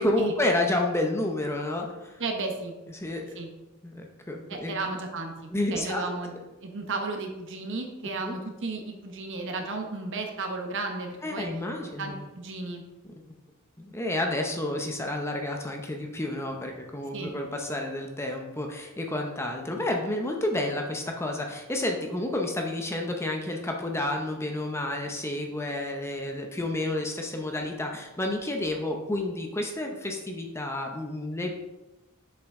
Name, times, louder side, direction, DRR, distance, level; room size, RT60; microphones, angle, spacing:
voice 1, 0.0-2.2 2.9-3.4 3.8-4.8 5.5-6.1 8.2-8.3 11.2-12.2 13.8-31.6, left 1 dB, 10° left, 2 dB, 0.7 m, -30 dB
voice 2, 2.2-2.7 3.4-3.5 4.5-6.3 6.6-11.5 12.0-12.8 17.1-17.3, right 3 dB, 60° right, 3 dB, 1.1 m, -34 dB
7.0 x 5.6 x 3.7 m, 1.0 s
head